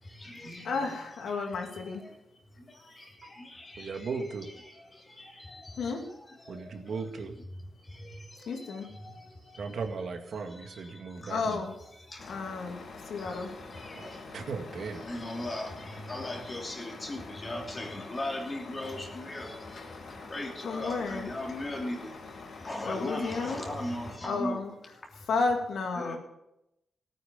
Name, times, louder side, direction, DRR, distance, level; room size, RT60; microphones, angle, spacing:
voice 1, 0.0-1.0 1.2-2.1 2.5-4.2 4.6-6.9 7.8-9.8 10.5-11.6 11.9-12.6 13.2-14.3 15.0-22.1 22.6-24.6 25.9-26.2, left 1 dB, 25° left, 0 dB, 3.1 m, -40 dB
voice 2, 0.6-2.0 5.8-6.0 8.5-8.9 11.3-11.7 12.3-12.8 13.0-13.5 20.6-21.3 22.8-23.6 24.2-24.7 25.3-26.2, left 4 dB, 90° left, 2 dB, 2.9 m, -32 dB
voice 3, 3.8-4.5 6.5-7.3 9.5-11.6 13.9-15.0, right 4 dB, 65° right, 5 dB, 2.0 m, -37 dB
Truck, 12.2-24.2, left 3 dB, 60° left, 2.8 m, -45 dB
17.0 x 9.5 x 7.0 m, 0.84 s
wide cardioid pair, 120°, 0 cm